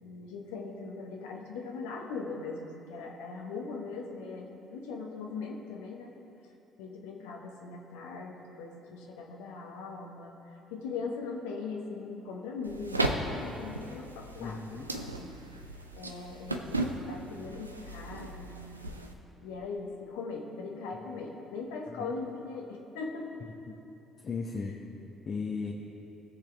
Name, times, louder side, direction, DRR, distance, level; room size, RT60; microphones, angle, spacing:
voice 1, 0.0-6.1 6.8-15.4 15.9-16.8 17.1-18.9 19.4-23.4, left 4 dB, 65° left, 0 dB, 1.0 m, -40 dB
sound 1, 12.6-19.1, right 2 dB, 85° right, 0.4 m, -36 dB
voice 2, 14.4-14.9 21.1-21.2 21.9-22.1 23.7-23.8 24.2-24.7 25.2-25.7, left 5 dB, 40° left, -1 dB, 0.9 m, -36 dB
18.0 x 6.6 x 3.4 m, 2.9 s
figure-of-eight pair, 50°, 0 cm